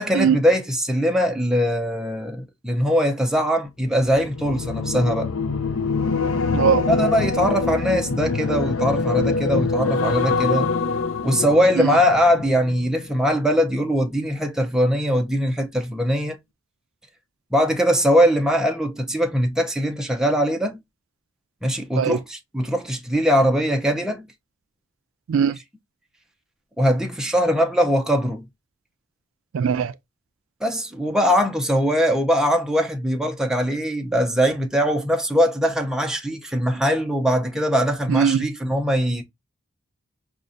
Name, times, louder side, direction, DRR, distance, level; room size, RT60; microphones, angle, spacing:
voice 1, 0.0-5.3 6.9-10.7 11.2-16.4 17.5-20.8 21.6-24.3 26.8-28.4 30.6-39.2, equal, 5° right, 0.5 m, -21 dB
sound 1, 4.0-13.4 13.7-14.0, left 4 dB, 80° left, 0.5 m, -25 dB
voice 2, 6.5-6.9 11.7-11.9 21.9-22.2 25.3-25.6 29.5-29.9 38.1-38.5, right 7 dB, 75° right, 0.3 m, -20 dB
5.2 x 2.4 x 2.5 m
head